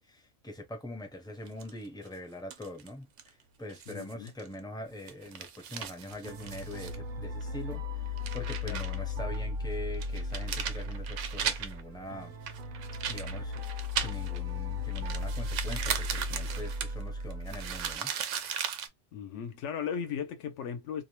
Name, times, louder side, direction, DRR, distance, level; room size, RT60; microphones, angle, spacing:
voice 1, 0.0-3.3 3.6-12.3 13.1-18.1, left 1 dB, 5° left, 0.4 m, -43 dB
sound 1, 1.5-2.1 2.5-2.9 3.2-3.3 3.7-4.5 4.9-7.0 7.4-7.5 8.1-9.0 9.3-9.4 9.9-11.8 12.5-14.5 14.9-18.9, right 8 dB, 90° right, 0.9 m, -37 dB
voice 2, 3.9-4.3 8.7-8.8 19.1-21.0, left 7 dB, 85° left, 1.0 m, -36 dB
sound 2, 6.2-17.9, left 3 dB, 55° right, 0.6 m, -36 dB
2.6 x 2.1 x 3.0 m
omnidirectional pair, 1.2 m